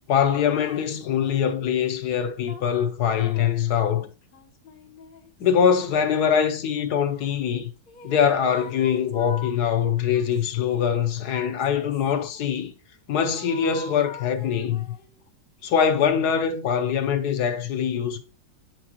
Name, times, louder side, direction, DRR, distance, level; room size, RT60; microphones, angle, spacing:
voice 1, 0.1-4.1 5.4-7.7 8.0-12.7 13.1-14.8 15.6-18.2, left 8 dB, 65° left, 1.2 m, -23 dB
sound 1, 0.5-1.7 2.5-6.8 7.9-9.6 10.1-12.5 13.3-15.2, left 4 dB, 45° left, 0.7 m, -44 dB
Mallet percussion, 12.8-12.9, left 7 dB, 90° left, 2.1 m, -51 dB
9.0 x 6.1 x 2.9 m
omnidirectional pair, 2.0 m